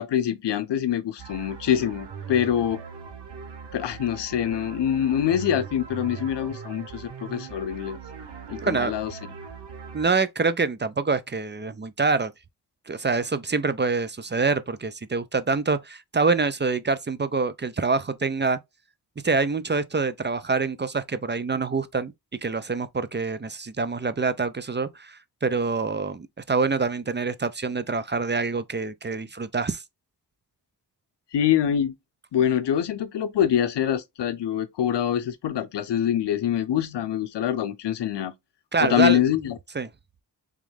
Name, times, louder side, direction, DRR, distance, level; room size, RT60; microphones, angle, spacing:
voice 1, 0.0-2.8 3.7-8.0 8.5-9.1 31.3-31.9 32.3-38.3 38.8-39.6, left 10 dB, 85° left, 0.6 m, -25 dB
sound 1, 1.2-10.1, right 6 dB, 85° right, 1.1 m, -40 dB
voice 2, 8.6-8.9 9.9-12.3 12.9-18.6 19.2-22.1 22.4-29.8 38.7-39.2 39.7-39.9, right 4 dB, 25° right, 0.5 m, -25 dB
3.6 x 3.1 x 3.3 m
cardioid pair, 45°, 41 cm